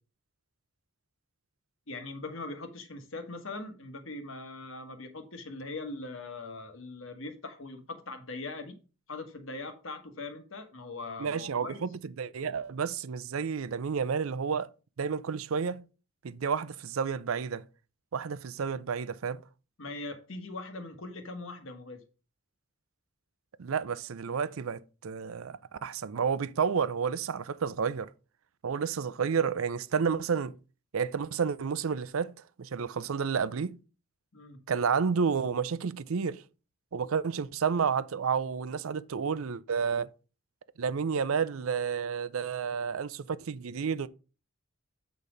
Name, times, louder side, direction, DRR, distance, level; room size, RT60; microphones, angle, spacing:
voice 1, 1.9-8.8 9.1-11.8 19.8-22.0 34.3-34.6, left 2 dB, 65° left, 1.4 m, -41 dB
voice 2, 11.2-11.9 12.2-14.7 15.0-15.8 16.2-17.6 18.1-19.4 23.6-28.1 28.6-30.5 30.9-32.3 32.6-33.8 34.7-36.4 36.9-40.1 40.8-44.1, right 6 dB, 75° right, 0.5 m, -30 dB
8.3 x 4.1 x 5.0 m
head